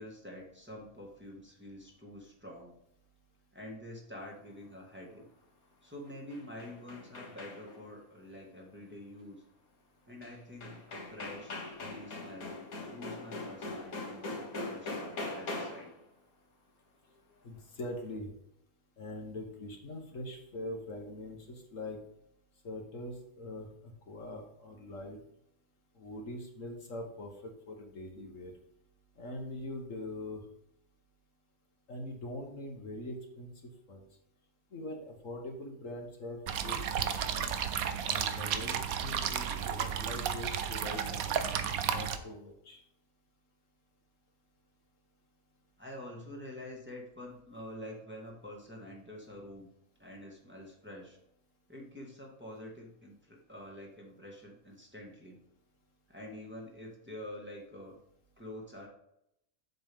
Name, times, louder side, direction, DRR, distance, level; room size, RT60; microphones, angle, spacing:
voice 1, 0.0-2.8 3.5-5.3 5.8-9.4 10.1-15.9 45.8-49.7 50.0-51.2 51.7-55.4 56.1-58.0 58.4-58.9, left 1 dB, 10° right, -2 dB, 2.0 m, -47 dB
sound 1, 6.1-7.9 10.2-10.3 10.6-16.0, left 2 dB, 85° left, 2.2 m, -41 dB
voice 2, 17.4-18.3 19.0-22.0 22.6-25.2 26.0-27.3 27.7-28.5 29.2-30.4 31.9-34.1 34.7-37.6 38.0-41.5 41.9-42.8, left 1 dB, 65° left, 2 dB, 1.7 m, -43 dB
sound 2, 36.5-42.2, right 8 dB, 85° right, 1.2 m, -33 dB
8.0 x 6.8 x 3.7 m, 0.78 s
omnidirectional pair, 1.5 m